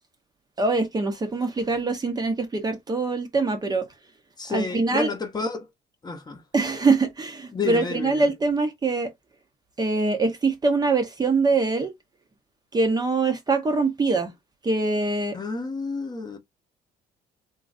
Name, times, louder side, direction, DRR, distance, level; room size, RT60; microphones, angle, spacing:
voice 1, 0.6-3.9 4.5-5.1 6.5-9.1 9.8-11.9 12.7-14.3 14.6-15.4, right 3 dB, 25° right, 0.6 m, -23 dB
voice 2, 4.4-5.7 6.0-6.4 7.5-8.3 15.3-16.4, left 4 dB, 25° left, 0.8 m, -30 dB
3.0 x 2.5 x 2.4 m
cardioid pair, 110°, 17 cm